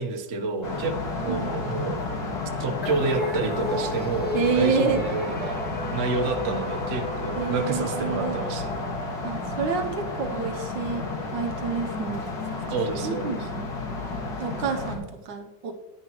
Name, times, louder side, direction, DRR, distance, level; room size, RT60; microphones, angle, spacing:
voice 1, 0.0-2.0 2.6-5.6 5.9-8.7 12.7-13.5, right 3 dB, 45° right, 4 dB, 1.1 m, -29 dB
sound 1, 0.6-15.0, left 3 dB, 55° left, 2.1 m, -31 dB
sound 2, 2.8-9.4, left 2 dB, 15° left, 0.3 m, -36 dB
voice 2, 4.3-5.0 7.4-8.4 9.2-11.1 11.3-12.3 12.7-12.8 13.0-13.7 14.4-15.7, right 5 dB, 70° right, 6 dB, 1.4 m, -28 dB
9.9 x 9.5 x 3.0 m, 1.1 s
omnidirectional pair, 2.1 m